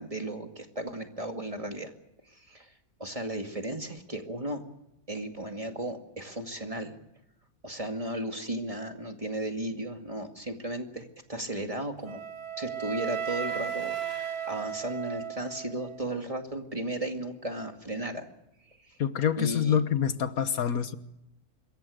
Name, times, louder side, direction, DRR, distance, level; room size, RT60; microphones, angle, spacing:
voice 1, 0.0-1.9 2.3-2.7 3.0-4.6 5.1-7.0 7.6-12.2 12.6-18.3 18.9-19.0 19.4-19.8, right 1 dB, 25° right, 2.2 m, -35 dB
Wind instrument woodwind instrument, 12.1-16.1, right 9 dB, 85° right, 1.7 m, -35 dB
voice 2, 19.0-20.9, left 8 dB, 75° left, 1.6 m, -26 dB
26.5 x 22.5 x 6.5 m
omnidirectional pair, 1.6 m